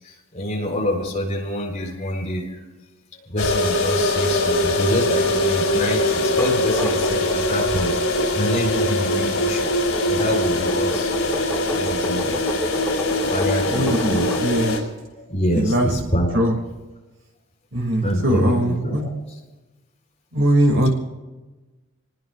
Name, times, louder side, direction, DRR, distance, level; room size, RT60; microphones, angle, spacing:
voice 1, 0.0-2.6 3.1-7.9 8.3-9.7 10.1-12.4 13.2-14.4 15.2-16.4 18.0-19.0, equal, 35° left, -1 dB, 4.2 m, -26 dB
sound 1, 3.4-14.8, left 1 dB, 90° left, 5.0 m, -22 dB
sound 2, 6.4-14.5, equal, 10° left, 1.8 m, -31 dB
voice 2, 13.7-14.8 15.5-15.9 16.3-16.6 17.7-19.1 20.3-20.9, right 1 dB, 60° right, 1 dB, 2.8 m, -20 dB
28.5 x 20.0 x 2.5 m, 1.2 s
head